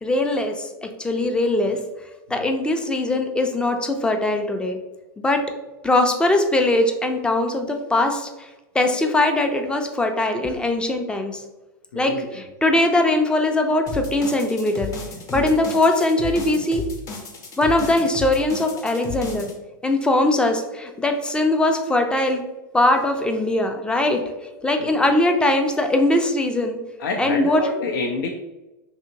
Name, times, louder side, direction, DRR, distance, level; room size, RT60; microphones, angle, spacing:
voice 1, 0.0-1.8 2.3-4.8 5.2-5.4 5.8-8.3 8.7-11.4 12.0-14.9 15.3-16.8 17.6-19.5 19.8-22.4 22.7-24.2 24.6-26.8 27.2-27.7, left 2 dB, 10° left, 5 dB, 0.4 m, -21 dB
voice 2, 11.9-12.3 15.3-15.6 24.8-24.9 27.0-28.3, left 3 dB, 80° left, 1 dB, 0.4 m, -28 dB
sound 1, 13.9-19.5, left 3 dB, 30° left, 0.7 m, -33 dB
2.8 x 2.8 x 2.6 m, 1.0 s
hypercardioid pair, 110°, 11 cm